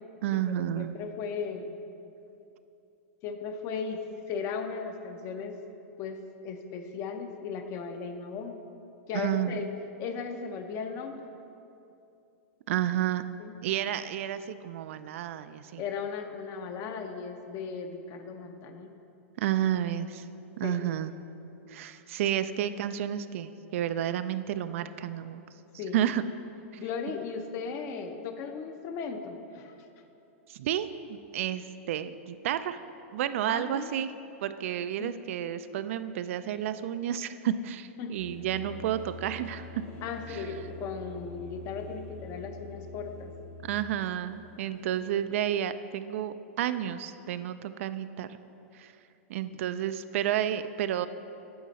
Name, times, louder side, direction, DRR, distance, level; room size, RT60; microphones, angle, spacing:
voice 1, 0.2-1.0 9.1-9.6 12.7-13.2 13.6-15.8 19.4-20.3 20.6-21.1 21.7-25.4 25.9-26.2 30.5-32.8 33.1-34.1 34.4-39.8 40.3-40.4 43.6-48.4 48.7-48.9 49.3-51.1, right 11 dB, 65° right, 12 dB, 0.4 m, -31 dB
voice 2, 0.8-1.7 3.2-4.0 4.3-5.6 6.0-8.6 9.1-9.7 10.0-11.2 13.4-13.5 15.8-18.9 20.6-20.9 25.8-26.0 26.8-29.8 33.5-33.9 35.0-35.1 38.0-38.1 40.0-43.3, left 5 dB, 40° left, 7 dB, 0.7 m, -36 dB
sound 1, 38.2-45.1, left 1 dB, 65° left, 1.2 m, -45 dB
9.5 x 6.3 x 4.1 m, 2.8 s
hypercardioid pair, 135°, 8 cm